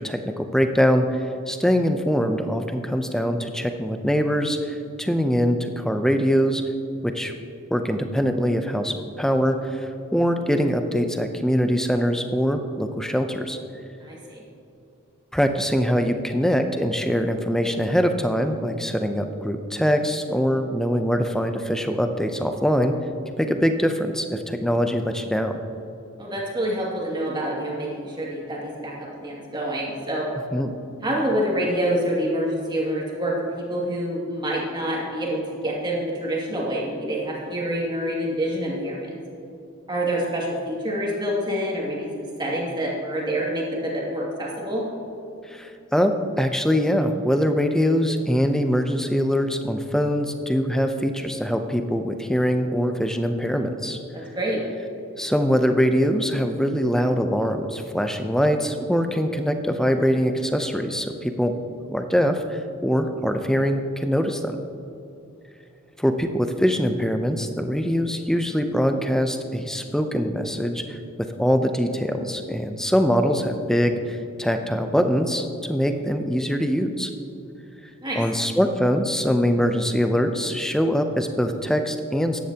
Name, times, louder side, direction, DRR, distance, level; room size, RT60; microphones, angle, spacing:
voice 1, 0.0-6.6 7.0-7.3 7.7-13.6 15.3-22.9 23.4-25.6 30.5-30.7 45.4-54.0 55.2-61.5 61.9-64.6 66.0-71.0 71.4-77.1 78.2-82.4, equal, ahead, 6 dB, 0.5 m, -23 dB
voice 2, 14.0-14.4 26.2-30.3 31.0-39.2 39.9-44.9 54.1-54.6 78.0-78.2, right 1 dB, 20° right, -4 dB, 2.2 m, -27 dB
14.5 x 10.5 x 2.9 m, 2.8 s
head